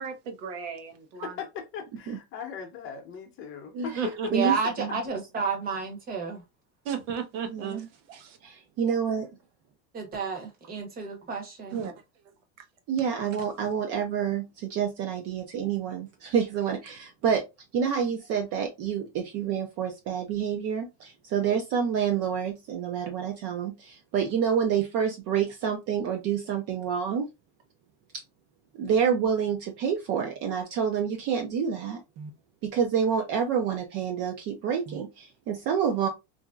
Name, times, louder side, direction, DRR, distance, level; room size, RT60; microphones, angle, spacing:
voice 1, 0.0-1.4 4.0-4.3 6.8-8.4 11.7-11.9, right 7 dB, 85° right, 0.9 m, -34 dB
voice 2, 1.2-4.3, left 7 dB, 35° left, 0.7 m, -38 dB
voice 3, 3.7-4.0 4.3-4.9 7.5-7.9 8.4-9.3 12.9-17.4 17.7-27.3 28.1-28.2 28.7-32.3 32.6-36.1, right 7 dB, 45° right, 0.5 m, -28 dB
voice 4, 4.3-6.4 9.9-11.8, right 5 dB, 25° right, 0.9 m, -30 dB
2.9 x 2.6 x 2.2 m
cardioid pair, 150°, 35 cm